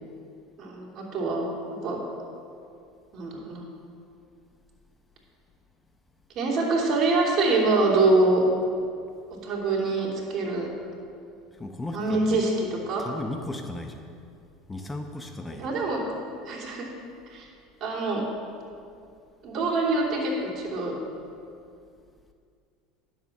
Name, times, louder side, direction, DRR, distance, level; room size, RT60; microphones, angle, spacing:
voice 1, 0.6-1.5 1.8-2.0 3.1-3.6 6.3-8.4 9.4-10.7 11.9-13.0 15.6-16.0 16.5-16.9 17.3-17.4 17.8-18.2 19.4-20.9, right 3 dB, 50° right, -2 dB, 3.0 m, -25 dB
voice 2, 11.5-12.5 13.0-14.1 14.7-15.7, left 2 dB, 15° left, 5 dB, 0.9 m, -36 dB
10.5 x 7.5 x 6.0 m, 2.4 s
hypercardioid pair, 85°, 0 cm